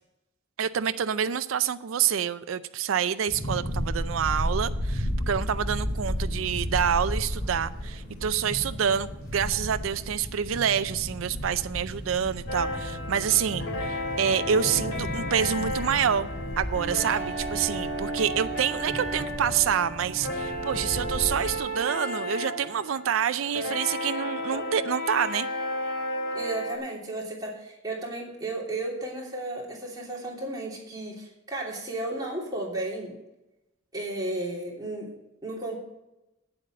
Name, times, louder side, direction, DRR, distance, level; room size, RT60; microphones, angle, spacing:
voice 1, 0.6-16.3 16.6-25.5, right 8 dB, 80° right, 12 dB, 0.4 m, -27 dB
sound 1, 3.3-21.6, equal, 45° left, 3.5 m, -34 dB
sound 2, 12.5-26.8, equal, 85° left, 2.6 m, -33 dB
voice 2, 26.3-33.2 33.9-35.1 35.4-35.8, right 2 dB, 20° right, -3 dB, 3.1 m, -34 dB
8.8 x 7.8 x 7.4 m, 0.94 s
head